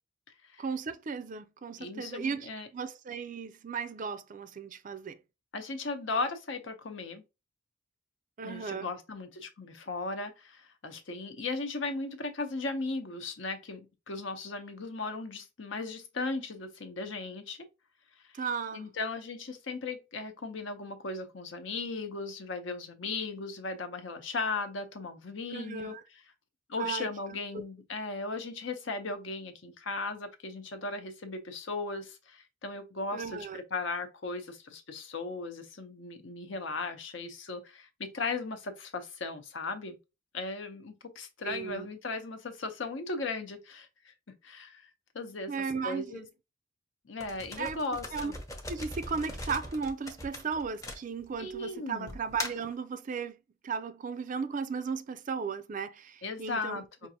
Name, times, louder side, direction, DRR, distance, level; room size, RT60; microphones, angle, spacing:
voice 1, 0.6-5.2 8.4-8.9 18.3-18.9 25.5-26.0 26.8-27.1 27.5-27.6 33.1-33.6 41.4-41.9 45.5-46.3 47.6-47.8 48.1-48.3 48.7-53.4 53.6-56.8, right 5 dB, 40° right, 0.4 m, -35 dB
voice 2, 1.8-2.7 5.5-7.2 8.4-17.6 18.7-25.9 26.7-40.0 40.3-44.8 45.1-45.5 45.8-46.2 47.1-48.3 51.4-52.2 56.2-57.1, left 3 dB, 65° left, 0.8 m, -37 dB
sound 1, 47.2-51.5 52.1-52.7, left 1 dB, 15° left, 0.7 m, -40 dB
5.2 x 2.5 x 2.8 m
head